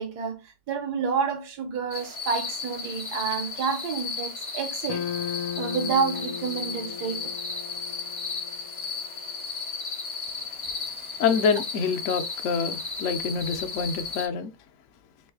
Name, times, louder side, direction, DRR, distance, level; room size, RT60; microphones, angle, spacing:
voice 1, 0.0-5.0 5.6-7.3, right 6 dB, 75° right, 1.4 m, -29 dB
sound 1, 1.9-14.3, left 4 dB, 35° left, 0.5 m, -34 dB
sound 2, 4.9-9.2, left 9 dB, 90° left, 1.2 m, -36 dB
voice 2, 11.2-14.5, left 6 dB, 65° left, 0.8 m, -26 dB
3.2 x 3.0 x 3.5 m
omnidirectional pair, 1.7 m